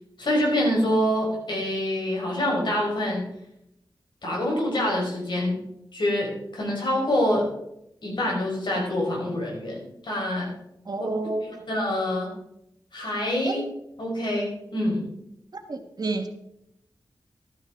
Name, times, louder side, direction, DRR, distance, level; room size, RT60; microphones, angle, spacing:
voice 1, 0.2-3.3 4.2-5.6 5.9-7.4 8.0-10.5 11.7-12.3 12.9-13.6 14.0-15.1, left 1 dB, 70° left, -2 dB, 5.3 m, -26 dB
voice 2, 10.8-11.6 13.4-13.7 15.5-16.3, right 3 dB, 50° right, 6 dB, 1.4 m, -30 dB
13.5 x 10.0 x 4.0 m, 0.80 s
wide cardioid pair, 80°, 8 cm